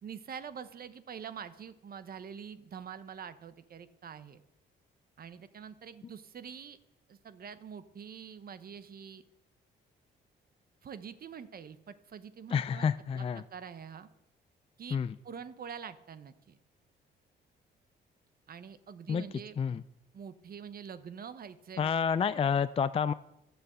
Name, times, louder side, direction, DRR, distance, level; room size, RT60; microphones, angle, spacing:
voice 1, 0.0-4.4 5.2-6.8 7.1-9.2 10.8-12.9 13.1-14.1 14.8-16.6 18.5-19.6 20.1-22.0, right 7 dB, 50° right, 13 dB, 0.9 m, -45 dB
voice 2, 12.5-13.4 14.9-15.1 19.1-19.2 19.6-19.8 21.8-23.1, left 6 dB, 30° left, 14 dB, 0.4 m, -29 dB
11.0 x 6.9 x 7.9 m, 0.86 s
cardioid pair, 90°, 20 cm